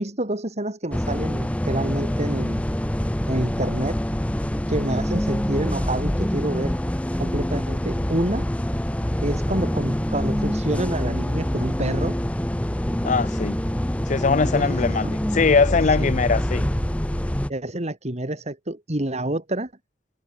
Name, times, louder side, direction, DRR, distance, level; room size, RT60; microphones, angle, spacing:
voice 1, 0.0-2.7 3.3-4.0 4.7-6.8 7.2-8.5 9.2-12.2 14.5-15.2 15.8-16.1 17.5-19.7, right 1 dB, 40° right, 2.8 m, -28 dB
sound 1, 0.9-17.5, equal, 10° left, 0.7 m, -25 dB
voice 2, 13.0-13.6 14.1-15.1 15.3-16.6, left 4 dB, 45° left, 0.5 m, -21 dB
head